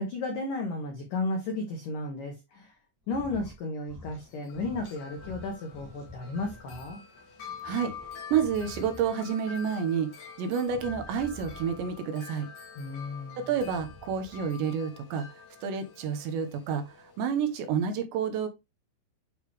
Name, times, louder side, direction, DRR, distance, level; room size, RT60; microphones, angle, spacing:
voice 1, 0.0-2.7 3.1-7.0 12.8-13.5, left 2 dB, 85° left, 1.8 m, -34 dB
sound 1, 3.0-3.6 3.8-4.3 4.5-6.9 7.3-9.3 10.6-12.0 13.5-14.5, left 1 dB, 5° right, 1.5 m, -48 dB
Wind chime, 4.2-17.6, left 6 dB, 60° left, 2.0 m, -47 dB
voice 2, 8.3-12.5 13.4-15.3 15.6-16.8 17.2-18.5, right 7 dB, 80° right, 2.9 m, -29 dB
9.3 x 3.3 x 3.4 m
omnidirectional pair, 5.5 m